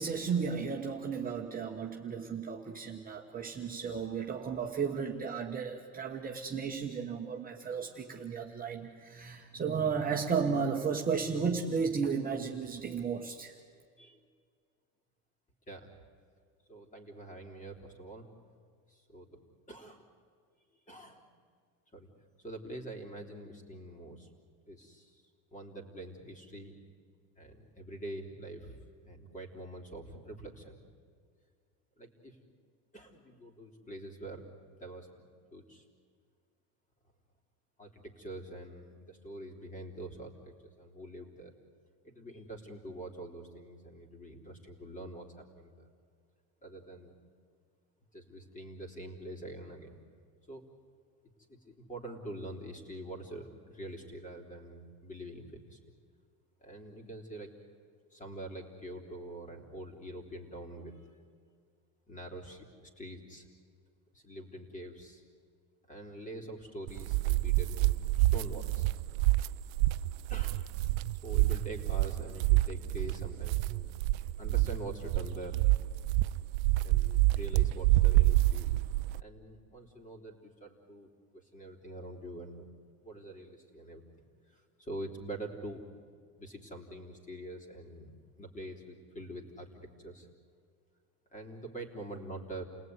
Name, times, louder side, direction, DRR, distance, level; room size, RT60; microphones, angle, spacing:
voice 1, 0.0-13.5, right 6 dB, 20° right, 1 dB, 1.4 m, -34 dB
voice 2, 16.7-18.3 18.9-19.4 19.7-20.0 20.9-21.3 21.9-22.1 22.4-24.3 24.7-25.2 25.5-26.7 27.4-28.8 29.0-30.8 32.0-32.4 32.9-35.8 37.8-41.5 42.0-45.9 46.6-47.1 48.1-50.0 50.5-50.7 51.6-55.8 56.6-57.5 58.1-61.1 62.1-63.5 64.1-65.2 65.9-68.9 70.3-70.7 71.2-74.0 74.4-75.6 76.8-78.7 79.2-82.6 83.0-84.0 84.5-85.8 86.4-88.1 88.4-90.3 91.3-92.6, right 1 dB, 20° left, 4 dB, 3.5 m, -45 dB
sound 1, 66.9-79.2, right 18 dB, 80° right, 0.6 m, -28 dB
29.0 x 18.5 x 9.6 m, 2.1 s
supercardioid pair, 140°, 41 cm